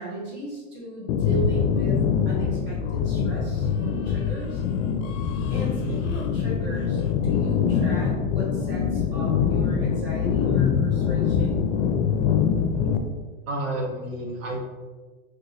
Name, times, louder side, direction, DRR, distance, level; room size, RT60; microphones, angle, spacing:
voice 1, 0.0-2.0 2.2-4.6 5.5-11.6, right 1 dB, 30° right, -6 dB, 1.4 m, -36 dB
sound 1, 1.1-13.0, left 7 dB, 75° left, 0.5 m, -24 dB
voice 2, 5.8-6.3 13.5-14.6, right 1 dB, 45° right, -2 dB, 0.9 m, -30 dB
2.9 x 2.2 x 3.9 m, 1.3 s
supercardioid pair, 150°, 37 cm